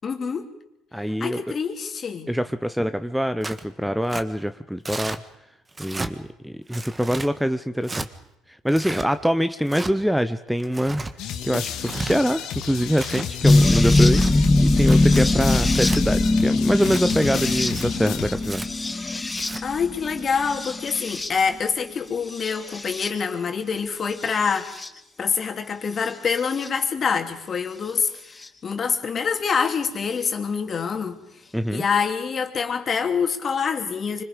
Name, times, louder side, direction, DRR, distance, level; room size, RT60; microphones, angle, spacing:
voice 1, 0.0-0.5 1.2-2.3 19.6-24.7 25.2-31.2 31.7-34.2, left 6 dB, 40° left, 5 dB, 3.0 m, -26 dB
voice 2, 0.9-1.4 2.3-5.2 5.8-8.1 8.5-11.0 11.4-18.6 31.5-31.8, equal, 5° right, 11 dB, 0.9 m, -24 dB
Tearing, 3.4-3.7 4.1-4.2 4.9-5.2 5.7-6.1 6.7-7.3 7.8-8.1 8.7-9.1 9.7-9.9 10.6-11.1 11.7-12.2 12.7-13.3 13.9-14.3 14.8-15.2 15.7-16.0 16.7-17.0 17.6-17.9 18.4-18.7 19.3-19.6, right 2 dB, 20° right, 1.7 m, -33 dB
sound 1, 11.2-18.8, left 9 dB, 65° left, 2.2 m, -33 dB
sound 2, 13.4-21.6 22.3-23.1 24.2-24.9 26.6-26.7 28.4-28.5, left 2 dB, 20° left, 2.1 m, -21 dB
26.0 x 25.0 x 5.2 m, 0.87 s
hypercardioid pair, 60°, 0 cm